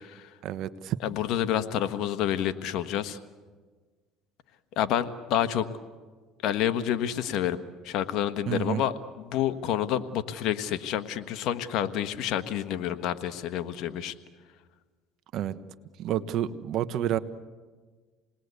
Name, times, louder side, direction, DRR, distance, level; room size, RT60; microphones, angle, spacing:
voice 1, 0.4-1.0 8.5-8.8 15.3-15.6 16.0-17.2, right 11 dB, 60° right, 13 dB, 1.1 m, -29 dB
voice 2, 1.0-3.2 4.8-5.7 6.4-7.6 7.8-14.1, left 10 dB, 65° left, 10 dB, 1.3 m, -28 dB
28.0 x 20.0 x 8.3 m, 1.4 s
supercardioid pair, 100°, 0 cm